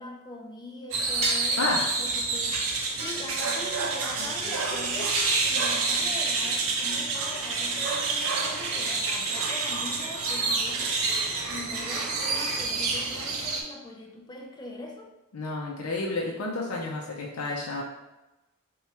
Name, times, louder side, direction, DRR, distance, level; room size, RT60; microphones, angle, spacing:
voice 1, 0.0-11.0 11.5-15.1, left 2 dB, 20° left, 1 dB, 0.4 m, -42 dB
sound 1, 0.9-13.6, right 3 dB, 70° right, 0.5 m, -28 dB
sound 2, 1.2-1.6 3.0-3.7 5.1-5.9, right 1 dB, 30° right, 0.7 m, -33 dB
voice 2, 1.6-1.9 15.3-17.8, left 2 dB, 80° left, -2 dB, 0.5 m, -30 dB
sound 3, 4.1-10.3 11.3-12.4, right 1 dB, 50° left, 1.0 m, -46 dB
4.4 x 2.3 x 2.8 m, 1.0 s
head